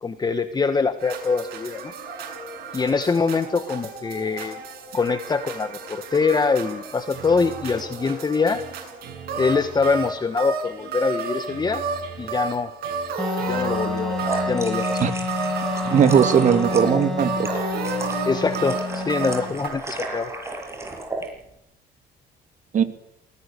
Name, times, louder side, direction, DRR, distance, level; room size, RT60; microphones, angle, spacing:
voice 1, 0.0-1.9 2.7-4.6 4.9-8.6 9.4-11.8 12.2-12.7 13.5-15.0 18.2-20.3, left 4 dB, 25° left, 9 dB, 1.5 m, -24 dB
sound 1, 1.0-19.7, right 4 dB, 65° right, 7.8 m, -32 dB
Wind instrument woodwind instrument, 13.2-19.6, left 3 dB, ahead, 4.6 m, -29 dB
sound 2, 13.8-21.3, right 2 dB, 15° right, 7.6 m, -34 dB
voice 2, 15.9-17.5 22.7-22.8, right 7 dB, 45° right, 8 dB, 2.6 m, -18 dB
19.5 x 18.5 x 8.4 m, 0.80 s
cardioid pair, 110°, 17 cm